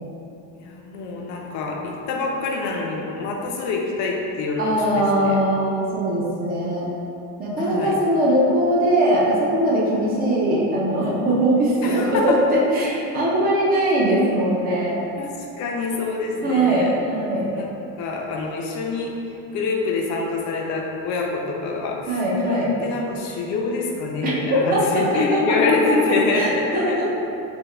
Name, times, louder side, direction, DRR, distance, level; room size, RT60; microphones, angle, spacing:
voice 1, 0.6-5.4 7.6-8.0 11.8-12.4 15.2-16.9 17.5-17.7 18.0-19.1 19.5-27.1, left 3 dB, 55° left, 0 dB, 0.5 m, -26 dB
voice 2, 4.6-6.9 7.4-15.0 16.4-17.5 22.1-22.7 24.2-27.1, right 1 dB, 25° right, -5 dB, 0.5 m, -21 dB
3.5 x 2.2 x 3.2 m, 2.8 s
cardioid pair, 170°, 34 cm